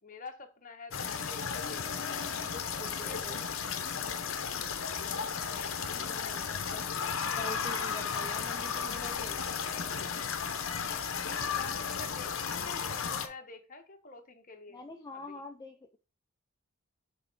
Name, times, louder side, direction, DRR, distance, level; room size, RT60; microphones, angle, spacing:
voice 1, 0.0-2.3 2.8-4.3 5.1-6.3 10.8-14.8 15.1-15.4, left 3 dB, 40° left, 1.0 m, -49 dB
sound 1, 0.9-13.3, left 6 dB, 65° left, 0.8 m, -34 dB
voice 2, 2.5-3.4 5.9-6.9 7.2-9.4 11.5-11.6 14.7-16.0, left 2 dB, 15° left, 0.4 m, -46 dB
6.6 x 3.3 x 5.1 m
head